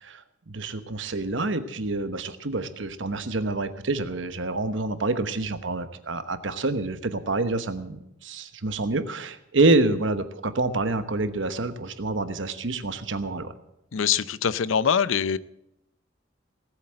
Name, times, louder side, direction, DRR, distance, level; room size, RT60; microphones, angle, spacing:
voice 1, 0.0-13.5, right 2 dB, 70° right, 10 dB, 1.1 m, -27 dB
voice 2, 13.9-15.4, left 7 dB, 90° left, 17 dB, 0.6 m, -23 dB
18.5 x 8.2 x 7.7 m, 0.86 s
head